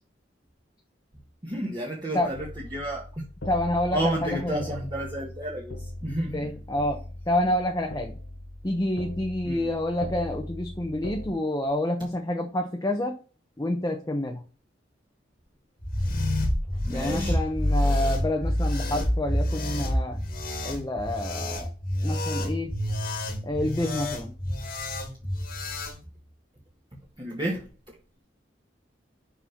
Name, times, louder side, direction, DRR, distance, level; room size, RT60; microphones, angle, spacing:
voice 1, 1.4-3.2 3.9-6.5 9.4-9.7 16.8-17.4 27.2-27.7, right 1 dB, 25° right, 1.6 m, -31 dB
sound 1, 2.3-11.3, left 1 dB, 90° left, 1.4 m, -40 dB
voice 2, 3.4-4.6 6.3-7.0 7.3-8.1 8.6-13.2 13.6-14.4 16.9-20.2 20.6-21.7 22.0-22.7 23.4-24.3, left 1 dB, 20° left, 0.9 m, -28 dB
sound 2, 15.8-26.0, left 1 dB, 55° left, 1.9 m, -28 dB
6.3 x 5.5 x 5.8 m
head